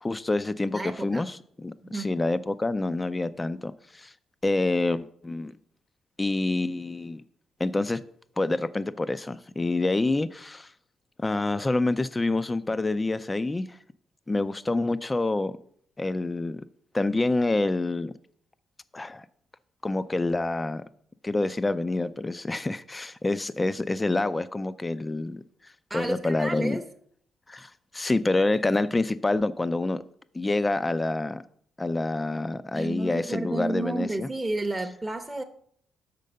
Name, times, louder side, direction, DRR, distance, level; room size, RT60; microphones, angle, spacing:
voice 1, 0.0-4.1 4.4-5.6 6.2-7.2 7.6-8.0 8.4-10.7 11.2-13.8 14.3-15.5 16.0-16.6 16.9-18.1 18.9-19.3 19.8-20.8 21.2-25.4 25.9-26.8 27.5-30.0 30.3-31.4 31.8-34.3, left 2 dB, 20° left, 0.4 m, -27 dB
voice 2, 0.7-1.3 1.9-2.1 25.9-26.8 32.7-35.4, right 2 dB, 10° right, 0.7 m, -31 dB
6.4 x 5.2 x 6.6 m
cardioid pair, 90°, 0 cm